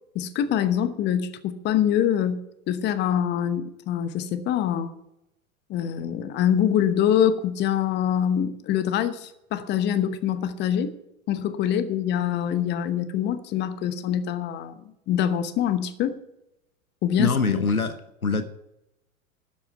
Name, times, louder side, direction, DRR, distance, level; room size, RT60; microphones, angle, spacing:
voice 1, 0.1-4.9 5.7-11.0 11.3-14.8 15.1-16.1 17.0-17.4, left 9 dB, 25° left, 11 dB, 1.0 m, -24 dB
voice 2, 17.2-18.4, left 4 dB, 90° left, 10 dB, 1.1 m, -24 dB
12.0 x 8.2 x 6.1 m, 0.85 s
figure-of-eight pair, 100°, 42 cm